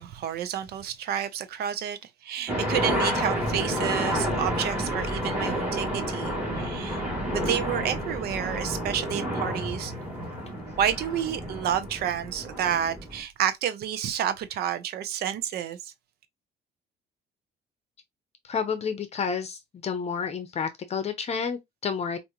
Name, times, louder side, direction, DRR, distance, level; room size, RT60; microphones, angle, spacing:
voice 1, 0.0-7.0 7.3-9.9 10.8-15.9, right 9 dB, 70° right, 0.6 m, -30 dB
sound 1, 2.5-13.2, equal, 10° right, 2.5 m, -30 dB
voice 2, 18.4-22.2, left 6 dB, 40° left, 0.7 m, -30 dB
4.7 x 2.6 x 2.9 m
cardioid pair, 110°, 17 cm